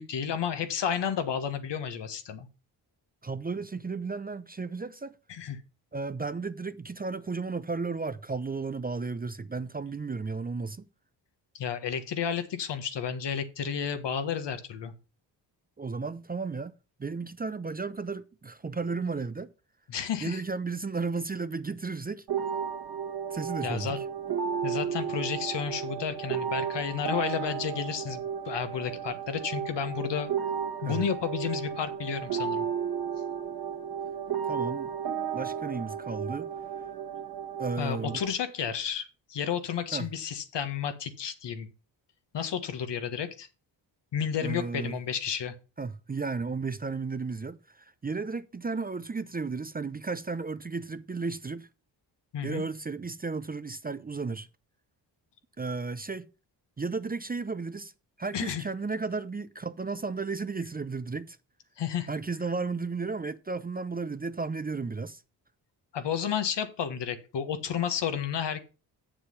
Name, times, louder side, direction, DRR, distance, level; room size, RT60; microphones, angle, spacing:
voice 1, 0.0-2.5 5.3-5.6 11.5-14.9 19.9-20.4 23.6-24.0 24.6-30.3 30.8-32.7 37.8-41.7 42.3-43.5 44.1-45.5 52.3-52.6 58.3-58.6 61.8-62.1 65.9-68.6, left 8 dB, 70° left, 1.4 m, -32 dB
voice 2, 3.2-5.2 5.9-10.9 15.8-16.7 17.0-19.5 20.2-22.2 23.3-24.0 30.8-31.0 34.5-34.9 35.3-36.5 37.6-38.2 39.9-40.1 44.4-44.9 45.8-51.7 52.4-54.5 55.6-56.3 56.8-57.9 58.2-61.4 62.1-65.2, right 4 dB, 20° right, 0.6 m, -34 dB
sound 1, 22.3-38.3, right 7 dB, 50° right, 1.9 m, -33 dB
7.6 x 6.9 x 5.5 m
supercardioid pair, 60°, 45 cm